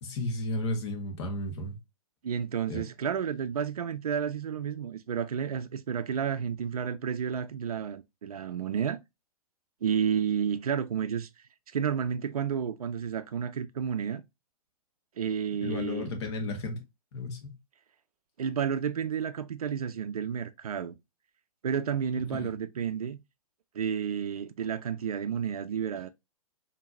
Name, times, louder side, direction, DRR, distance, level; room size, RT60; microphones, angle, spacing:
voice 1, 0.0-1.7 2.7-2.8 15.6-16.8 17.1-17.5 22.2-22.6, left 2 dB, 50° left, 1.3 m, -33 dB
voice 2, 2.2-9.0 9.8-11.3 11.7-14.2 15.2-16.1 18.4-21.0 21.6-23.2 23.7-26.1, right 7 dB, 75° right, 0.4 m, -31 dB
4.4 x 2.9 x 2.5 m
figure-of-eight pair, 115°, 19 cm